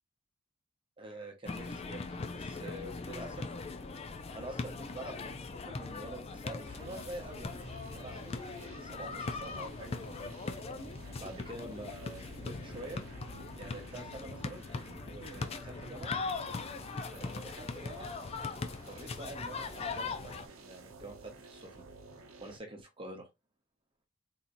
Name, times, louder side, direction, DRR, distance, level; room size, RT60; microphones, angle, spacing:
voice 1, 1.0-3.5 4.3-10.0 11.2-13.0 13.6-14.6 15.0-16.1 17.1-18.1 18.8-21.1 21.4-21.7 22.4-23.3, right 1 dB, 25° right, 0.9 m, -46 dB
sound 1, 1.4-20.5, left 4 dB, 30° left, 0.4 m, -40 dB
sound 2, 6.6-22.6, right 3 dB, 90° right, 0.7 m, -52 dB
3.9 x 2.8 x 2.5 m
head